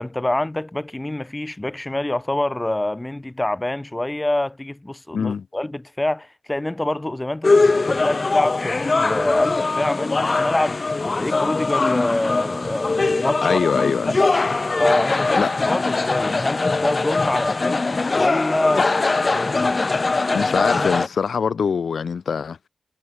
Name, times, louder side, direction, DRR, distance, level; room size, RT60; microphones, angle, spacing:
voice 1, 0.0-13.7 14.0-14.3 14.8-18.9 19.3-19.7, left 1 dB, 15° left, 4.8 m, -26 dB
voice 2, 5.1-5.5 13.4-14.1 15.3-15.5 20.3-22.7, left 6 dB, 70° left, 2.6 m, -23 dB
sound 1, 7.4-21.1, left 3 dB, 35° left, 1.7 m, -21 dB
wide cardioid pair, 85°, 0 cm